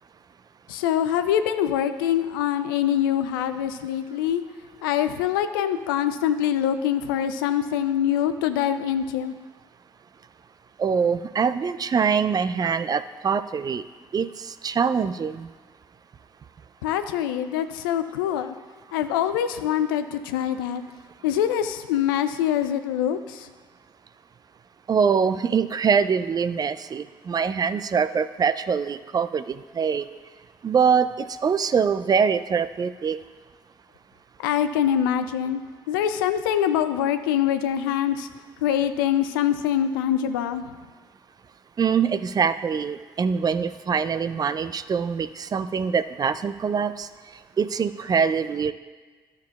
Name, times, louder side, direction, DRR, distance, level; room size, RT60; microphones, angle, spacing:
voice 1, 0.7-4.4 4.8-9.4 16.8-18.6 18.9-20.8 21.2-23.5 34.4-35.6 35.9-38.3 38.6-40.8, left 10 dB, 80° left, 10 dB, 0.4 m, -24 dB
voice 2, 10.8-13.8 14.1-15.5 24.9-30.1 30.6-33.2 41.8-47.1 47.6-48.7, right 6 dB, 35° right, 13 dB, 0.4 m, -24 dB
13.0 x 6.7 x 2.3 m, 1.4 s
hypercardioid pair, 45°, 11 cm